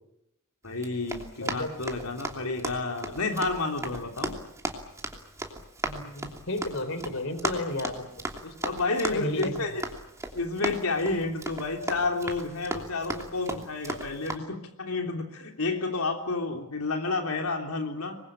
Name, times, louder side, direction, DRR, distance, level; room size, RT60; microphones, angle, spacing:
voice 1, 0.6-4.4 8.6-9.8 10.3-18.2, left 3 dB, 85° left, 3 dB, 3.3 m, -30 dB
Run, 0.7-14.4, right 1 dB, 15° right, 2.9 m, -37 dB
voice 2, 5.8-8.1 8.4-8.7 9.1-9.5, left 1 dB, 65° left, 11 dB, 3.5 m, -32 dB
26.0 x 21.0 x 8.9 m, 0.81 s
head